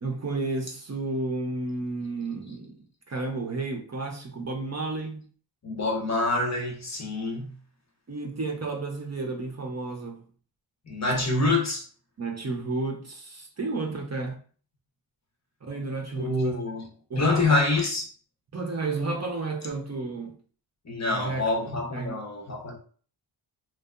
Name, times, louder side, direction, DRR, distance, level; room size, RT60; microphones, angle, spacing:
voice 1, 0.0-5.2 8.1-10.2 12.2-14.4 15.7-16.6 17.1-17.6 18.5-20.4 21.1-21.4 21.9-22.2, right 3 dB, 35° right, 0.6 m, -32 dB
voice 2, 5.6-7.5 10.9-11.9 16.2-16.9 17.2-18.1 20.8-22.8, left 2 dB, 35° left, 0.7 m, -26 dB
2.7 x 2.2 x 2.3 m
cardioid pair, 70°, 48 cm